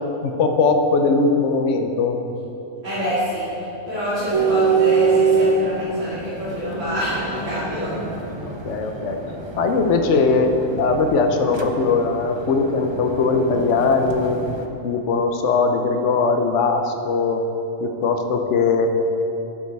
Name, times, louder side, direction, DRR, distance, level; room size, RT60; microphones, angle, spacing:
voice 1, 0.2-2.2 8.5-9.2 9.6-14.4 14.8-17.4 17.8-18.9, left 4 dB, 70° left, 5 dB, 1.1 m, -20 dB
voice 2, 2.8-7.9, equal, 70° right, -13 dB, 3.4 m, -26 dB
sound 1, 4.3-14.7, right 5 dB, 30° right, 0.5 m, -25 dB
12.0 x 8.4 x 4.7 m, 3.0 s
omnidirectional pair, 1.3 m